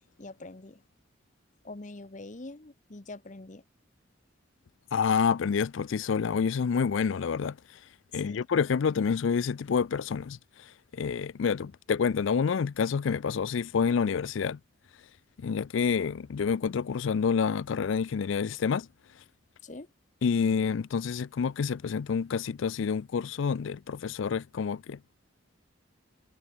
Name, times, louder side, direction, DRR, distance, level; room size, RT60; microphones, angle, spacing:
voice 1, 0.2-0.8 1.6-3.6 8.1-8.5 19.6-19.9, left 2 dB, 40° left, 0.9 m, -44 dB
voice 2, 4.9-7.6 8.1-10.4 10.9-14.6 15.4-18.9 20.2-25.2, left 6 dB, 75° left, 0.4 m, -28 dB
head